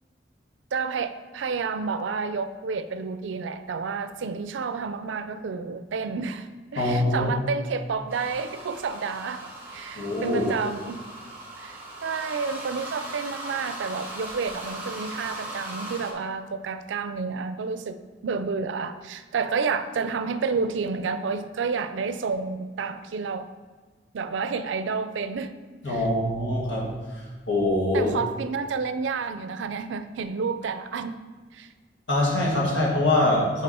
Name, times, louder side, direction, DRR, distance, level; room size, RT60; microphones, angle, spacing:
voice 1, 0.7-11.0 11.6-23.5 24.1-25.5 25.9-26.0 27.9-31.2 31.5-31.7, right 5 dB, 90° right, 11 dB, 0.4 m, -30 dB
voice 2, 6.8-7.3 10.0-10.5 25.8-28.1 32.1-33.6, left 1 dB, 90° left, -4 dB, 1.8 m, -24 dB
sound 1, 8.1-16.1, right 2 dB, 10° right, 1.1 m, -38 dB
5.3 x 5.1 x 4.2 m, 1.5 s
head